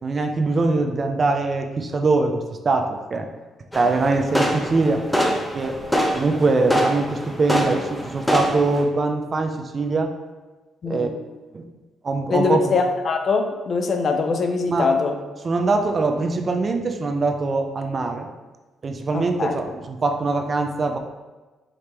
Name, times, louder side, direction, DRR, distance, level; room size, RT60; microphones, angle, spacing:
voice 1, 0.0-3.3 3.7-5.1 5.6-5.8 6.1-10.1 10.9-11.1 11.5-11.7 12.0-12.8 14.7-14.9 15.4-18.3 18.8-21.0, right 3 dB, 40° right, 5 dB, 0.4 m, -22 dB
sound 1, 3.7-8.8, equal, 5° left, 0.6 m, -24 dB
voice 2, 10.8-11.1 12.3-15.2 19.1-19.6, left 4 dB, 50° left, 5 dB, 0.5 m, -22 dB
4.9 x 2.8 x 3.3 m, 1.2 s
cardioid pair, 90°, 0 cm